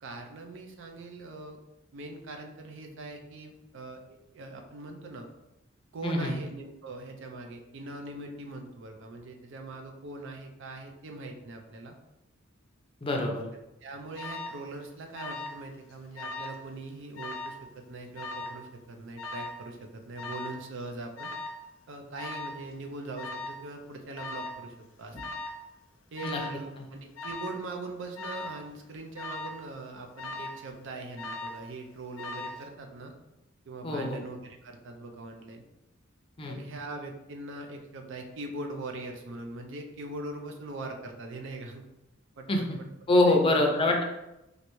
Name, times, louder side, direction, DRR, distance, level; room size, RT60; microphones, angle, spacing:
voice 1, 0.0-1.6 1.9-4.0 4.3-5.3 5.9-11.9 13.8-21.3 21.9-25.2 26.1-33.1 33.7-35.6 36.4-41.9 42.4-42.7 43.3-43.9, right 2 dB, 65° right, 4 dB, 0.5 m, -41 dB
voice 2, 6.0-6.3 13.0-13.4 26.2-26.4 26.8-26.9 33.8-34.2 36.4-36.6 42.5-42.8 43.1-44.0, left 2 dB, 25° left, 1 dB, 0.5 m, -25 dB
Alarm, 14.2-14.6 15.1-15.6 15.9-16.6 17.2-17.6 18.2-18.6 19.2-19.6 20.2-20.6 21.2-21.6 22.2-22.6 23.2-23.6 24.2-24.6 25.2-25.6 26.2-26.6 27.2-27.6 28.2-28.6 29.2-29.6 30.2-30.6 31.2-31.7 32.2-32.6, left 2 dB, 85° left, 0.4 m, -38 dB
3.2 x 2.5 x 3.0 m, 0.93 s
head